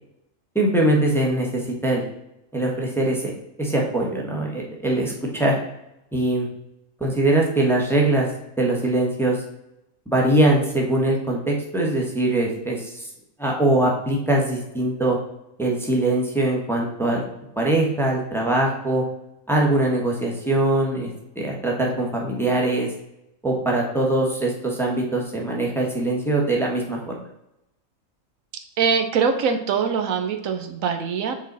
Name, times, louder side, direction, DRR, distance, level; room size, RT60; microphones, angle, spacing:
voice 1, 0.5-2.0 2.5-5.5 6.1-6.5 7.0-8.3 8.6-9.4 10.1-13.1 13.4-15.2 15.6-17.2 17.6-19.0 19.5-22.9 23.4-27.2, right 1 dB, ahead, -2 dB, 1.2 m, -22 dB
voice 2, 28.8-31.3, right 6 dB, 75° right, 6 dB, 1.1 m, -23 dB
7.2 x 4.2 x 4.0 m, 0.86 s
omnidirectional pair, 1.4 m